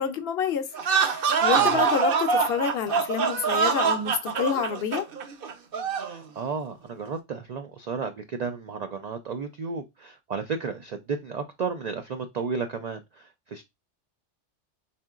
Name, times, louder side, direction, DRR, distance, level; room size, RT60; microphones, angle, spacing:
voice 1, 0.0-5.1, left 7 dB, 65° left, 0.7 m, -28 dB
sound 1, 0.7-6.2, right 5 dB, 55° right, 0.7 m, -24 dB
voice 2, 6.0-13.6, right 5 dB, 75° right, 0.3 m, -33 dB
4.2 x 3.6 x 2.3 m
omnidirectional pair, 1.2 m